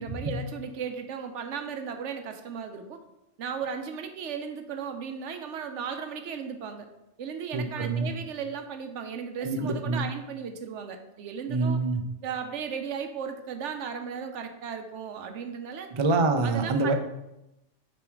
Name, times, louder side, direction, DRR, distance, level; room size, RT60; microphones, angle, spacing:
voice 1, 0.0-3.0 3.4-6.9 7.2-11.8 12.2-15.9 16.4-16.9, right 6 dB, 80° right, 7 dB, 1.0 m, -36 dB
voice 2, 7.5-8.1 9.4-10.0 11.5-12.0 15.9-16.9, right 3 dB, 45° right, 6 dB, 0.4 m, -26 dB
6.9 x 3.1 x 4.5 m, 0.90 s
omnidirectional pair, 1.2 m